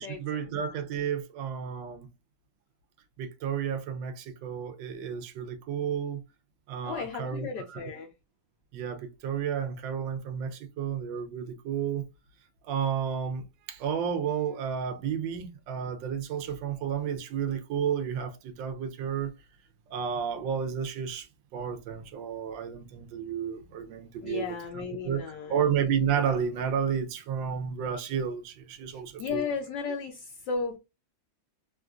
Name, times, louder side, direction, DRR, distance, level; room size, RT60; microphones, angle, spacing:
voice 1, 0.0-2.1 3.2-6.2 6.7-7.8 8.7-12.1 12.6-19.3 19.9-29.5, right 7 dB, 75° right, 1.2 m, -32 dB
voice 2, 6.8-8.1 24.2-25.6 28.9-30.8, left 5 dB, 75° left, 1.1 m, -34 dB
3.7 x 2.4 x 2.3 m
omnidirectional pair, 2.2 m